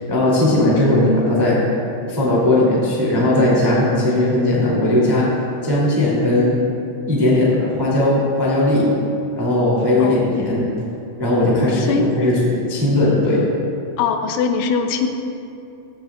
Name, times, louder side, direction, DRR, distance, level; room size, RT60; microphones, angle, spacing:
voice 1, 0.1-1.6 2.1-5.3 5.6-6.6 7.0-8.9 9.3-10.7 11.2-13.4, left 1 dB, 15° right, -7 dB, 0.7 m, -17 dB
voice 2, 11.8-12.1 14.0-15.1, left 5 dB, 85° left, 6 dB, 3.1 m, -21 dB
15.0 x 13.0 x 2.4 m, 2.7 s
omnidirectional pair, 5.5 m